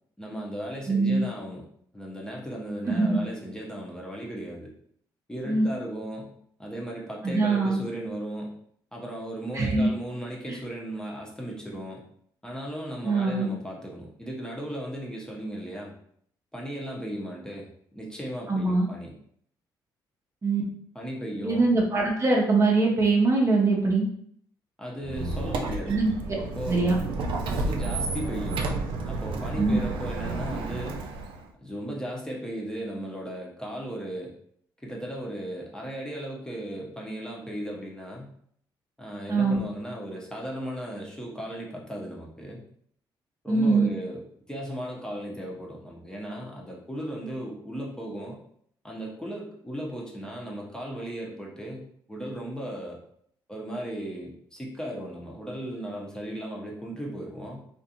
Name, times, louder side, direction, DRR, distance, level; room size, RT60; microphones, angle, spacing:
voice 1, 0.2-1.6 1.9-4.7 5.3-6.3 6.6-8.6 8.9-12.0 12.4-16.0 16.5-19.1 20.9-21.7 24.8-26.1 26.4-27.0 27.5-31.1 31.6-34.3 34.8-38.3 39.0-42.6 43.4-48.4 48.8-53.0 53.5-57.6, right 1 dB, 10° left, -3 dB, 0.7 m, -36 dB
voice 2, 0.9-1.2 2.9-3.2 5.5-5.7 7.2-7.8 9.5-9.9 10.5-10.6 13.0-13.5 18.5-18.9 20.4-20.6 21.4-24.0 25.9-26.1 26.7-27.0 29.6-29.8 39.3-39.6 43.5-43.9, right 3 dB, 30° right, -1 dB, 0.7 m, -22 dB
Squeak, 25.0-31.4, right 3 dB, 70° right, 0.4 m, -31 dB
2.5 x 2.4 x 2.7 m, 0.64 s
cardioid pair, 80°, 9 cm